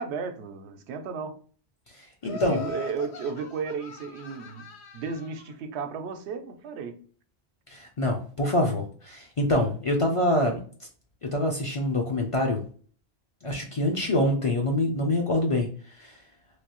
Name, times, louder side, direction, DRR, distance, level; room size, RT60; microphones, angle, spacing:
voice 1, 0.0-1.4 2.3-4.7 4.9-7.0, right 5 dB, 85° right, 0.8 m, -34 dB
Laughter, 2.2-5.4, left 5 dB, 85° left, 0.9 m, -41 dB
voice 2, 2.2-2.6 7.7-10.6 11.2-12.6 13.4-15.7 16.0-16.1, left 1 dB, 45° left, 0.4 m, -25 dB
3.2 x 2.6 x 2.9 m
omnidirectional pair, 1.1 m